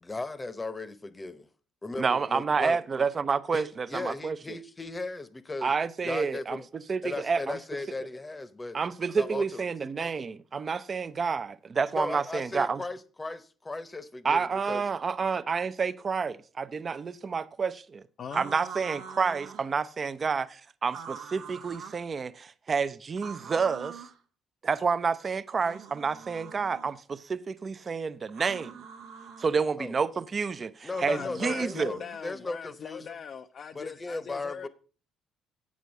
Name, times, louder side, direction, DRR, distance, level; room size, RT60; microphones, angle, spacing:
voice 1, 0.0-1.5 1.8-2.8 3.5-5.7 6.0-6.7 7.0-8.8 9.2-9.6 11.9-14.8 29.8-30.0 30.8-33.2 33.7-34.7, left 3 dB, 20° left, 0.8 m, -36 dB
voice 2, 2.0-4.4 5.6-7.6 8.7-12.8 14.2-18.0 18.3-24.0 24.6-28.8 29.4-31.9, right 5 dB, 40° right, 0.5 m, -29 dB
sound 1, 18.3-19.7 20.9-22.0 23.2-24.2 25.5-27.0 28.3-29.5 30.9-32.2, right 6 dB, 75° right, 0.9 m, -44 dB
voice 3, 31.1-34.7, left 7 dB, 55° left, 0.4 m, -40 dB
8.1 x 6.2 x 5.3 m
supercardioid pair, 65°, 0 cm